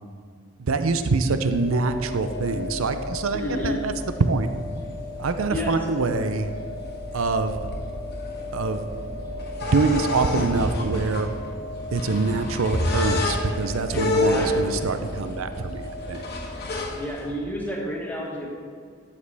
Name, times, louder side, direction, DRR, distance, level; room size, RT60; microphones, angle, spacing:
voice 1, 0.6-3.9 4.2-4.5 5.2-6.5 7.1-7.6 8.5-8.8 9.7-11.3 11.9-16.2, right 3 dB, 85° right, 9 dB, 0.6 m, -25 dB
sound 1, 1.5-17.3, left 2 dB, 50° left, 1.5 m, -30 dB
voice 2, 3.3-3.8 5.5-5.7 13.9-14.8 16.9-18.5, left 1 dB, 10° left, -3 dB, 1.7 m, -31 dB
12.5 x 7.4 x 3.4 m, 2.1 s
head